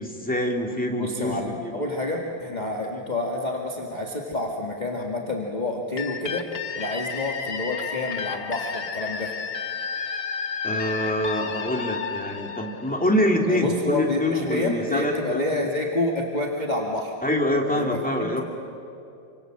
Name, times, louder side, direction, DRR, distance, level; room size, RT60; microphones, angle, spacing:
voice 1, 0.0-1.7 10.6-15.4 17.2-18.4, left 1 dB, 5° left, 1 dB, 2.7 m, -25 dB
voice 2, 1.0-6.5 6.7-9.3 13.5-17.1 17.7-18.4, left 2 dB, 25° left, -1 dB, 2.0 m, -28 dB
sound 1, 6.0-13.5, left 6 dB, 40° left, 1.1 m, -32 dB
28.5 x 26.0 x 7.7 m, 2.7 s
omnidirectional pair, 2.0 m